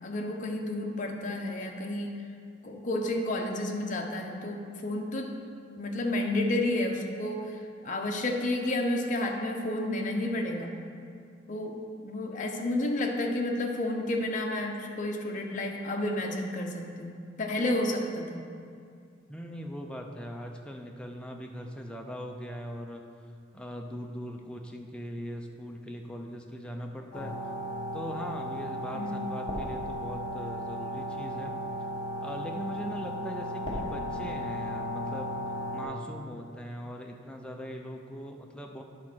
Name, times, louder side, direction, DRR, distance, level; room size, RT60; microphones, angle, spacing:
voice 1, 0.0-2.2 2.6-5.3 5.8-7.4 7.8-10.7 11.5-18.4 28.9-29.3, left 1 dB, 40° left, 1 dB, 0.8 m, -31 dB
voice 2, 19.3-23.0 23.5-27.3 27.9-31.6 32.2-35.4 35.7-38.8, equal, 5° left, 2 dB, 0.5 m, -40 dB
sound 1, 27.1-35.8, equal, 25° left, 1.5 m, -35 dB
9.7 x 4.2 x 6.1 m, 2.3 s
head